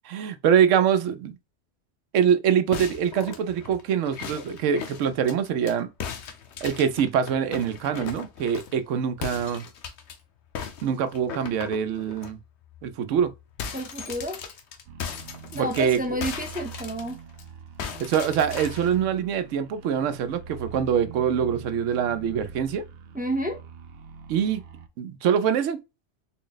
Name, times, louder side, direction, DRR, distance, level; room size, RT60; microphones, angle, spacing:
voice 1, 0.1-1.4 2.1-5.9 6.6-9.7 10.8-12.4 12.8-13.3 15.5-16.0 18.0-22.8 24.3-24.6 25.0-25.8, right 8 dB, 90° right, 0.9 m, -24 dB
sound 1, 2.7-5.7 6.0-8.8 9.2-10.2 10.6-12.3 12.7-12.9 13.2-17.4 17.8-19.0, left 7 dB, 70° left, 0.9 m, -37 dB
voice 2, 13.7-14.4 15.5-17.2 23.1-23.6, right 1 dB, 15° right, 0.4 m, -30 dB
sound 2, 14.9-24.9, right 6 dB, 60° right, 0.7 m, -43 dB
4.0 x 2.0 x 3.9 m
omnidirectional pair, 1.2 m